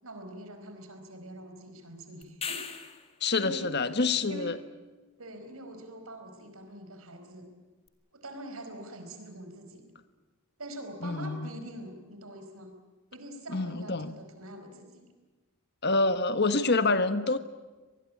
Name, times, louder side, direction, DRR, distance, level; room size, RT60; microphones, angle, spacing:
voice 1, 0.0-2.7 3.3-3.7 4.2-4.5 5.2-7.5 8.1-9.9 10.6-12.7 13.1-15.1, right 1 dB, 75° right, 7 dB, 4.8 m, -44 dB
sound 1, 2.2-3.2 7.9-8.0, left 6 dB, 25° left, 2.0 m, -37 dB
voice 2, 3.2-4.6 11.0-11.5 13.5-14.1 15.8-17.4, left 3 dB, 50° left, 11 dB, 1.4 m, -27 dB
25.5 x 20.0 x 8.6 m, 1.2 s
head